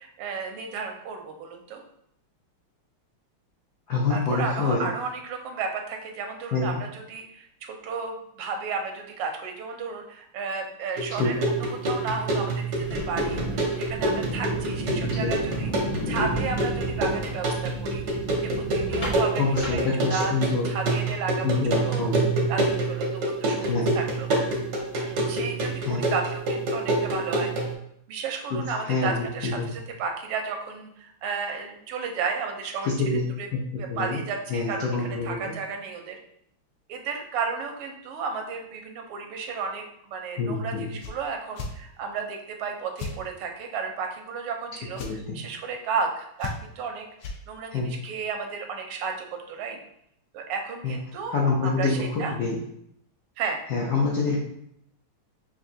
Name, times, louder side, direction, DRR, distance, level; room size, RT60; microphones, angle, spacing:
voice 1, 0.0-1.8 4.1-18.0 18.4-20.3 20.7-22.1 22.5-24.3 24.9-27.5 28.1-32.9 33.4-33.5 33.8-36.2 36.9-45.0 45.3-49.8 50.3-51.3 51.6-52.3 53.4-53.6, right 5 dB, 85° right, 3 dB, 1.6 m, -33 dB
voice 2, 3.9-4.9 6.5-6.8 11.2-11.3 14.9-15.3 16.2-16.3 19.4-20.7 21.4-22.5 23.7-23.9 25.8-26.1 28.5-29.6 33.0-33.2 33.5-33.6 33.9-34.2 34.5-35.5 40.4-40.9 45.1-45.4 47.7-47.9 50.8-52.6 53.7-54.4, left 3 dB, 70° left, -4 dB, 0.9 m, -26 dB
sound 1, 11.0-27.7, right 2 dB, 70° right, 0.7 m, -27 dB
sound 2, 12.8-20.5, equal, 40° left, 0.7 m, -33 dB
sound 3, 41.0-41.2 41.5-41.7 43.0-43.2 44.9-45.1 46.4-46.8 47.2-47.4, left 4 dB, 85° left, 1.5 m, -34 dB
5.9 x 2.5 x 2.6 m, 0.73 s
omnidirectional pair, 2.4 m